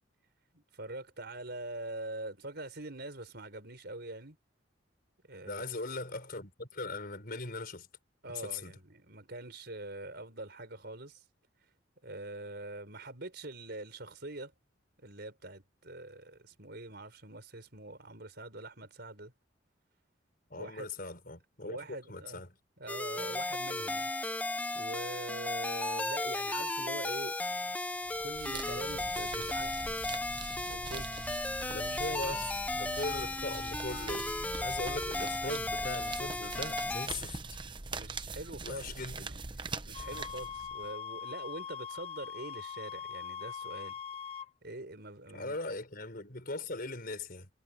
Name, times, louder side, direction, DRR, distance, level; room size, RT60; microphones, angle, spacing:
voice 1, 0.5-4.4 5.3-5.6 8.2-11.2 12.0-14.5 15.0-19.3 20.5-20.9 21.6-22.4 22.8-27.4 28.2-29.7 30.7-31.2 32.3-32.4 35.1-35.3 37.8-44.0 44.6-45.6, right 2 dB, 60° right, 5.1 m, -44 dB
voice 2, 5.5-7.9 8.3-8.7 20.5-22.5 31.7-37.6 38.6-39.3 45.3-47.5, left 2 dB, 50° left, 5.0 m, -40 dB
sound 1, 22.9-37.1, left 2 dB, 10° left, 0.7 m, -35 dB
sound 2, 28.0-40.9, right 3 dB, 25° right, 0.9 m, -43 dB
sound 3, 39.9-44.5, left 7 dB, 35° left, 1.2 m, -42 dB
head